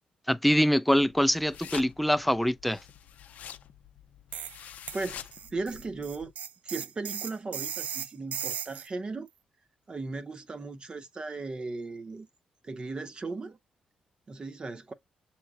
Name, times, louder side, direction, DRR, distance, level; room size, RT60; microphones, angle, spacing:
voice 1, 0.3-2.8, equal, ahead, 0.4 m, -24 dB
sound 1, 1.0-6.3, left 9 dB, 75° left, 0.5 m, -46 dB
sound 2, 4.3-4.6 4.9-8.9, right 9 dB, 70° right, 0.3 m, -37 dB
voice 2, 4.9-6.3 6.6-9.3 9.9-12.3 12.6-13.6 14.3-14.9, right 3 dB, 35° right, 0.8 m, -37 dB
6.8 x 3.2 x 2.4 m
cardioid pair, 75°, 3 cm